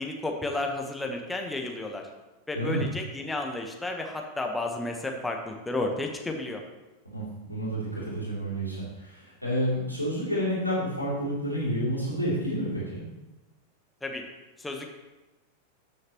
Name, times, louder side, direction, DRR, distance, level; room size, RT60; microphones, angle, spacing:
voice 1, 0.0-2.0 2.5-6.6 14.0-14.2 14.6-14.9, left 2 dB, 10° left, 2 dB, 1.1 m, -32 dB
voice 2, 7.1-13.1, equal, 90° right, -7 dB, 3.2 m, -30 dB
13.0 x 6.4 x 3.0 m, 1.1 s
figure-of-eight pair, 90°, 0 cm